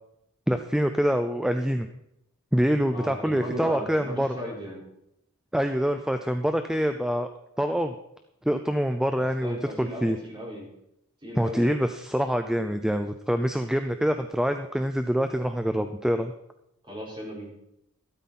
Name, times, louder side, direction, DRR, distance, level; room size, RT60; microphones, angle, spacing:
voice 1, 0.5-1.9 2.5-4.3 5.5-7.3 7.6-7.9 8.4-10.2 11.4-16.3, equal, 5° right, 7 dB, 0.5 m, -25 dB
voice 2, 2.9-4.8 9.1-10.7 11.2-11.7 16.8-17.5, equal, 25° right, -3 dB, 4.7 m, -36 dB
13.0 x 12.5 x 4.2 m, 0.80 s
head